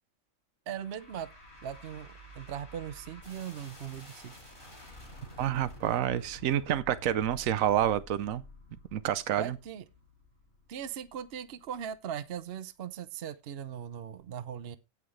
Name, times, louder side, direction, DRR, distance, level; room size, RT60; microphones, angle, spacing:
sound 1, 0.7-11.9, left 1 dB, 40° left, 7.2 m, -51 dB
voice 1, 0.7-1.3 1.6-4.3 9.4-9.8 10.7-14.8, right 9 dB, 55° right, 0.9 m, -39 dB
voice 2, 5.4-8.4 8.9-9.6, right 11 dB, 80° right, 1.1 m, -28 dB
17.0 x 5.9 x 3.2 m
omnidirectional pair, 1.4 m